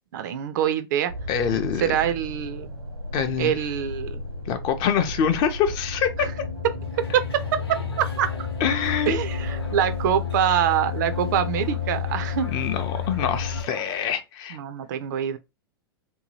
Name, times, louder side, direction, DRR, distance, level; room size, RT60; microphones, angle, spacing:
voice 1, 0.1-1.1 1.8-2.7 3.4-4.2 6.2-6.3 7.1-7.6 8.0-8.5 9.1-12.5 14.5-15.4, right 9 dB, 50° right, 0.4 m, -25 dB
sound 1, 1.1-13.6, left 5 dB, 85° right, 0.9 m, -31 dB
voice 2, 1.3-1.9 3.1-3.6 4.5-6.3 8.6-9.2 12.5-14.6, left 8 dB, 35° left, 0.5 m, -25 dB
sound 2, 6.8-14.2, left 2 dB, 75° left, 0.8 m, -46 dB
2.7 x 2.2 x 3.1 m
figure-of-eight pair, 95°, 13 cm